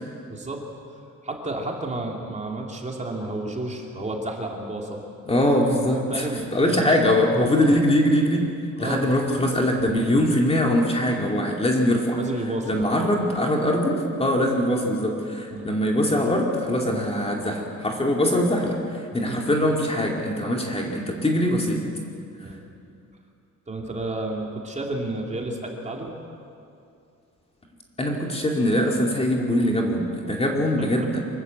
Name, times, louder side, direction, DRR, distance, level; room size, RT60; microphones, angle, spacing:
voice 1, 0.3-0.6 1.2-5.0 5.8-7.0 8.8-9.1 12.2-12.9 15.5-15.7 19.2-19.4 22.4-22.6 23.7-26.1 30.8-30.9, right 2 dB, 20° right, 0 dB, 2.9 m, -31 dB
voice 2, 5.3-12.2 12.7-21.9 28.0-31.2, left 1 dB, 20° left, 0 dB, 2.5 m, -22 dB
25.0 x 21.0 x 8.2 m, 2.5 s
wide cardioid pair, 160°, 31 cm